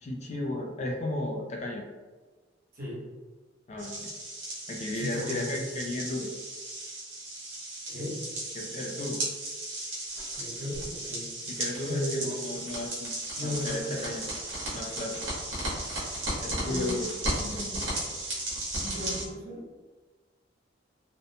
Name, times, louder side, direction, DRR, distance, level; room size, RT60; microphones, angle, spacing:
voice 1, 0.0-1.8 3.7-4.1 4.7-6.3 8.5-9.2 11.5-13.1 13.4-14.2 14.7-15.2 16.4-17.1, left 1 dB, 35° left, 1 dB, 0.3 m, -34 dB
sound 1, 3.8-19.2, right 1 dB, 80° right, 1.0 m, -35 dB
voice 2, 4.9-5.5 7.9-8.2 10.3-11.6 11.9-12.3 13.3-14.2 16.6-17.0 17.3-17.9 18.8-19.6, left 1 dB, 50° right, -8 dB, 1.1 m, -35 dB
2.6 x 2.1 x 2.7 m, 1.3 s
head